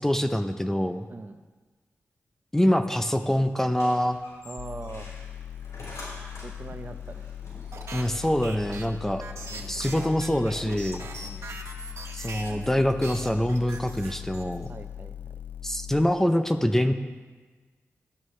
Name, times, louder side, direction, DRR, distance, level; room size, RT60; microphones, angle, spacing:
voice 1, 0.0-1.0 2.5-4.2 7.9-9.3 9.7-11.1 12.1-14.7 15.6-16.9, equal, 10° left, 8 dB, 0.6 m, -25 dB
voice 2, 1.1-1.4 4.4-5.1 6.4-7.3 9.5-9.8 11.2-11.5 14.7-15.4, right 3 dB, 40° right, 8 dB, 0.8 m, -42 dB
sound 1, 3.6-11.8, left 1 dB, 90° left, 5.0 m, -48 dB
sound 2, 4.6-16.0, left 10 dB, 40° left, 0.8 m, -40 dB
sound 3, 7.7-12.7 13.0-14.7, right 3 dB, 65° right, 1.5 m, -41 dB
17.5 x 12.5 x 3.2 m, 1.4 s
wide cardioid pair, 105°, 5 cm